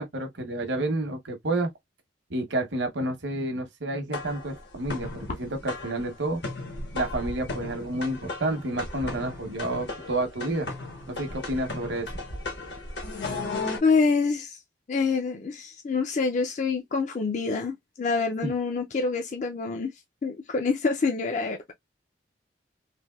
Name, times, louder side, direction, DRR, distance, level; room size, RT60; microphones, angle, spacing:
voice 1, 0.0-1.7 2.3-5.1 5.4-6.4 6.9-10.7 11.1-12.1 18.4-18.5, right 2 dB, 75° right, 0.9 m, -29 dB
sound 1, 4.1-13.8, left 2 dB, 70° left, 1.1 m, -36 dB
voice 2, 13.8-14.6 14.9-19.9 20.2-21.7, left 4 dB, 40° left, 0.4 m, -26 dB
3.3 x 2.6 x 2.2 m
head